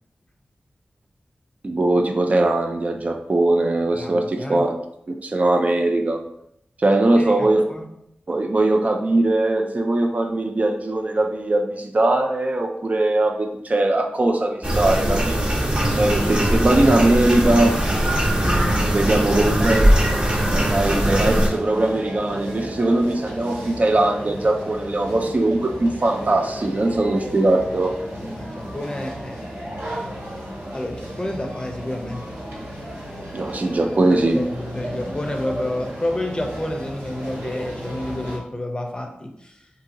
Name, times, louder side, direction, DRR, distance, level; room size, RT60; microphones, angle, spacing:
voice 1, 1.6-4.8 5.1-6.2 6.8-7.7 8.3-15.5 16.0-17.8 18.9-19.9 20.5-27.9 33.3-34.4, right 2 dB, 45° right, 4 dB, 0.3 m, -20 dB
voice 2, 3.9-4.7 7.2-8.0 15.8-16.1 28.1-29.4 30.7-32.6 34.3-39.7, left 1 dB, 25° left, 3 dB, 0.5 m, -30 dB
sound 1, 14.6-21.5, right 1 dB, 30° right, 0.7 m, -20 dB
sound 2, 19.6-38.4, equal, 75° right, 1.0 m, -34 dB
2.7 x 2.7 x 2.5 m, 0.77 s
cardioid pair, 40°, 4 cm